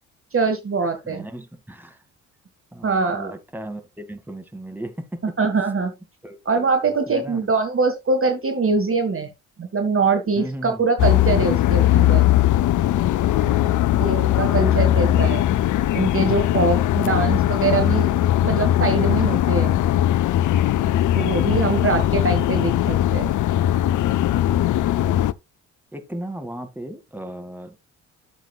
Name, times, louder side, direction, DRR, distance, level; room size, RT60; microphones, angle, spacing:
voice 1, 0.3-1.2 2.8-3.3 5.2-5.9 6.4-9.3 9.6-12.3 14.0-15.5 15.9-18.1 18.4-19.8 21.1-23.3, right 4 dB, 30° right, 1.6 m, -23 dB
voice 2, 1.0-2.0 2.7-5.3 6.2-6.8 7.1-7.5 10.4-10.8 13.3-14.1 21.6-22.1 25.9-27.7, right 1 dB, 5° right, 2.1 m, -36 dB
sound 1, 11.0-25.3, left 13 dB, 45° left, 0.6 m, -19 dB
12.0 x 7.3 x 2.4 m
hypercardioid pair, 45°, 42 cm